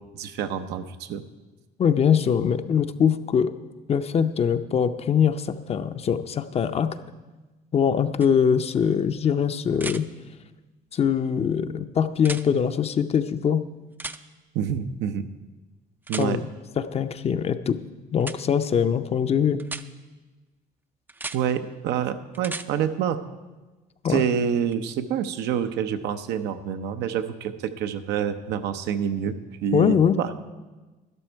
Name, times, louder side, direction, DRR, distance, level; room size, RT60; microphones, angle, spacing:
voice 1, 0.1-1.2 14.5-15.3 16.1-16.4 21.3-23.2 24.1-29.3 29.6-30.3, right 8 dB, 85° right, 9 dB, 0.7 m, -27 dB
voice 2, 1.8-3.5 3.9-6.9 7.7-10.1 10.9-13.6 16.2-16.4 16.8-17.8 18.1-19.6 24.0-24.2 29.7-30.2, left 7 dB, 35° left, 10 dB, 0.6 m, -22 dB
sound 1, 8.2-8.3 9.7-10.0 12.2-12.4 14.0-14.2 16.1-16.3 18.2-18.4 19.6-19.8 21.1-21.4 22.3-22.7 24.7-24.8, right 3 dB, 10° right, 0.4 m, -34 dB
12.5 x 11.5 x 4.5 m, 1.2 s
cardioid pair, 110°, 17 cm